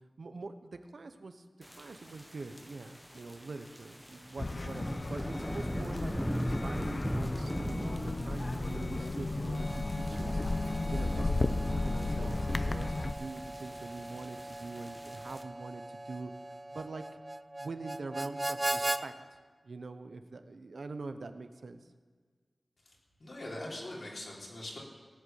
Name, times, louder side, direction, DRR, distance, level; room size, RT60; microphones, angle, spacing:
voice 1, 0.2-10.4 10.9-16.3 16.7-17.0 17.6-19.2 19.6-21.8, right 3 dB, 85° right, 9 dB, 0.9 m, -44 dB
sound 1, 1.6-15.4, equal, ahead, 0.8 m, -41 dB
sound 2, 4.4-13.1, left 2 dB, 50° left, 0.7 m, -34 dB
Harmonica, 9.5-19.0, right 1 dB, 25° right, 0.5 m, -40 dB
voice 2, 23.2-24.8, left 1 dB, 70° left, -3 dB, 3.7 m, -42 dB
18.5 x 8.3 x 7.0 m, 1.5 s
wide cardioid pair, 80°, 0 cm